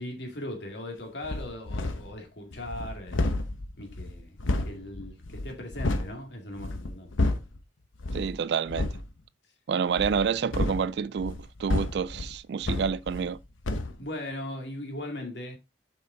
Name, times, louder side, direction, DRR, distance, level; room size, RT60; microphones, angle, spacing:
voice 1, 0.0-3.3 3.8-4.4 4.6-7.1 14.0-15.6, left 1 dB, 60° left, 2.4 m, -38 dB
sound 1, 1.2-2.2 2.5-6.1 6.5-7.6 8.0-8.3 8.7-9.1 9.9-13.4 13.6-14.0, left 2 dB, 90° left, 0.9 m, -31 dB
voice 2, 8.1-8.9 9.7-13.4, right 6 dB, 60° right, 0.3 m, -28 dB
7.1 x 5.7 x 3.8 m
head